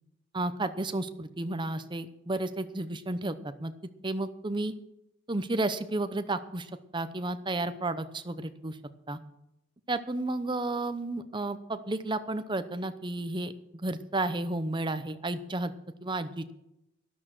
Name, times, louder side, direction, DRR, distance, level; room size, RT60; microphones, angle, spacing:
voice 1, 0.3-3.7 4.0-4.7 5.3-8.8 9.1-9.2 9.9-13.5 13.8-15.7 16.0-16.5, right 2 dB, 25° right, 10 dB, 0.8 m, -32 dB
12.5 x 11.5 x 6.1 m, 0.86 s
head